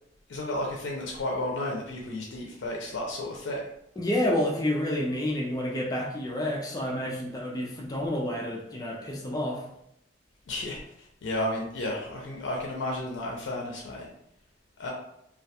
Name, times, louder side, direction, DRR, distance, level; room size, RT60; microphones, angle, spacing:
voice 1, 0.3-3.6 10.5-10.8 11.2-14.1 14.8-14.9, left 1 dB, 90° left, -1 dB, 0.4 m, -32 dB
voice 2, 4.0-9.6, left 1 dB, 20° left, -2 dB, 0.3 m, -29 dB
2.3 x 2.2 x 2.7 m, 0.78 s
head